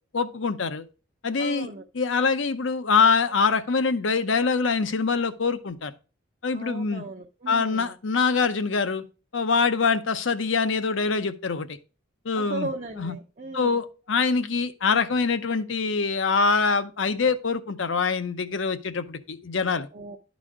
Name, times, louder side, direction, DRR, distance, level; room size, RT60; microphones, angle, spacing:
voice 1, 0.1-0.8 1.2-5.9 6.4-7.0 7.5-9.0 9.3-11.7 12.2-12.7 13.0-13.1 13.5-19.9, left 4 dB, 70° left, 0.7 m, -24 dB
voice 2, 1.4-1.8 6.5-7.9 12.3-13.8 19.9-20.2, right 3 dB, 40° right, 0.6 m, -36 dB
12.0 x 4.1 x 4.8 m
head